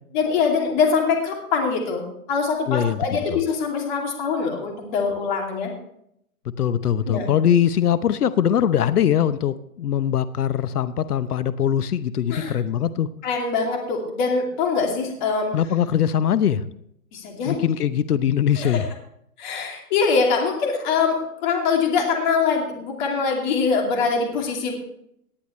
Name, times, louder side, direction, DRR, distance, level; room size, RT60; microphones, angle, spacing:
voice 1, 0.1-2.0 2.3-5.7 7.1-7.3 12.3-12.5 13.2-15.5 17.1-17.7 18.5-18.8 19.4-24.7, left 5 dB, 30° left, 1 dB, 2.6 m, -23 dB
voice 2, 2.7-3.4 6.6-13.1 15.5-16.6 17.5-18.8, left 9 dB, 85° left, 14 dB, 0.9 m, -21 dB
18.5 x 10.0 x 3.2 m, 0.74 s
hypercardioid pair, 160°, 45 cm